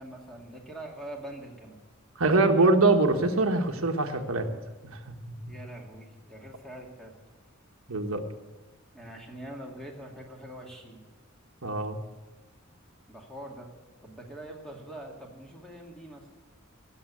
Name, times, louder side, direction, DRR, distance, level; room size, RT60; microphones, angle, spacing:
voice 1, 0.0-1.8 5.5-7.1 8.9-11.0 13.1-13.7 14.0-16.3, right 1 dB, 5° left, 0 dB, 2.3 m, -43 dB
voice 2, 2.2-4.5 4.8-5.1 7.9-8.2 11.6-12.0, right 3 dB, 85° right, 5 dB, 1.2 m, -23 dB
17.0 x 7.2 x 8.4 m, 1.2 s
head